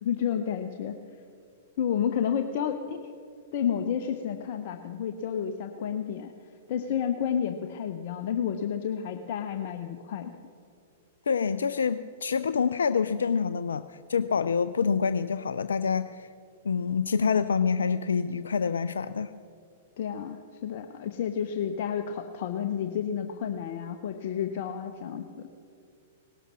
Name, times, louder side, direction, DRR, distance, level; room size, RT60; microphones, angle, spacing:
voice 1, 0.0-1.0 1.8-3.1 3.5-6.3 6.7-10.3 20.0-25.5, left 8 dB, 55° left, 7 dB, 0.8 m, -31 dB
voice 2, 11.3-16.3 16.6-19.3, left 6 dB, 75° left, 12 dB, 0.4 m, -27 dB
18.5 x 12.0 x 6.2 m, 2.4 s
figure-of-eight pair, 105°, 0 cm